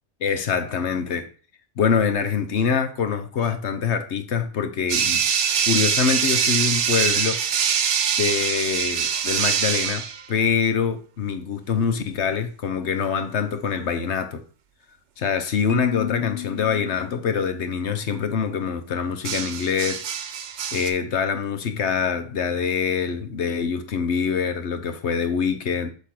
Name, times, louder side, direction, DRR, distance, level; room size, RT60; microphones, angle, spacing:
voice 1, 0.2-1.3 1.8-5.2 5.6-7.4 8.2-14.4 15.2-20.0 20.7-25.9, left 6 dB, 80° left, 1.2 m, -24 dB
sound 1, 4.9-10.2 13.7-14.0 19.2-20.9, right 7 dB, 90° right, 1.0 m, -23 dB
Marimba xylophone, 15.7-17.9, left 15 dB, 55° left, 0.9 m, -32 dB
8.3 x 3.3 x 6.0 m
omnidirectional pair, 1.2 m